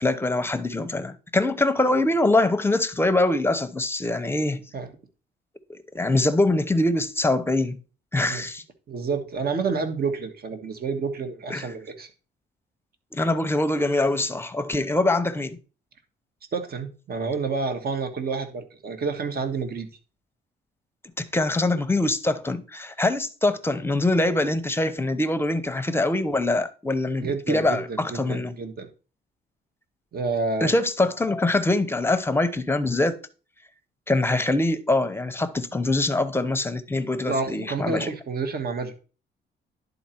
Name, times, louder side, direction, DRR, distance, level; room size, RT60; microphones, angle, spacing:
voice 1, 0.0-4.6 5.9-7.8 8.1-8.6 11.5-11.7 13.1-15.6 21.2-28.5 30.6-33.2 34.1-38.1, left 2 dB, 10° left, 0.8 m, -23 dB
voice 2, 8.9-12.1 16.5-19.9 27.2-28.9 30.1-30.7 37.3-39.0, right 4 dB, 50° right, 1.4 m, -29 dB
10.5 x 4.0 x 4.4 m
cardioid pair, 90°, 20 cm